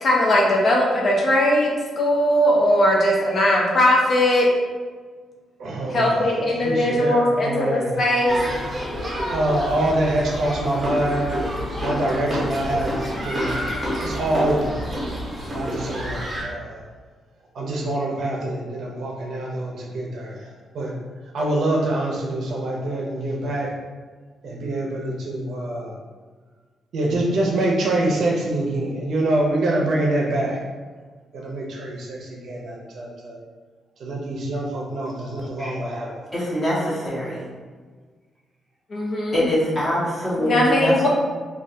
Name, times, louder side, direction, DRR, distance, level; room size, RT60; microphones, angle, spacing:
voice 1, 0.0-4.5 5.9-8.4 38.9-39.5 40.4-41.1, left 1 dB, 40° left, -2 dB, 0.4 m, -19 dB
voice 2, 5.6-6.2 6.6-7.9 9.3-11.4 11.8-13.7 14.0-14.9 15.5-16.8 17.5-20.5 20.7-20.9 21.3-23.7 24.4-25.9 26.9-30.6 31.3-33.4 34.0-36.1, right 1 dB, 60° right, -2 dB, 0.6 m, -25 dB
sound 1, 8.2-16.4, equal, 15° right, 0.7 m, -28 dB
voice 3, 36.3-37.4 39.3-40.9, equal, 20° left, -8 dB, 0.9 m, -23 dB
3.3 x 2.3 x 2.6 m, 1.5 s
wide cardioid pair, 155°, 0 cm